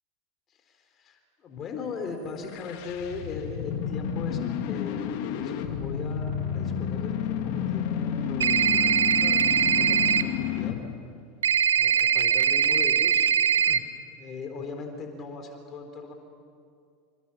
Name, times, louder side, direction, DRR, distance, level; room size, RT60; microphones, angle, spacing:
voice 1, 0.5-7.4 7.7-10.8 11.7-13.3 13.5-13.8 14.2-16.1, left 4 dB, 35° left, 5 dB, 4.0 m, -39 dB
sound 1, 2.3-11.0, left 8 dB, 60° left, 2.5 m, -31 dB
sound 2, 8.4-10.2 11.4-13.8, right 8 dB, 85° right, 1.0 m, -22 dB
29.0 x 27.5 x 7.3 m, 2.3 s
hypercardioid pair, 90°, 0 cm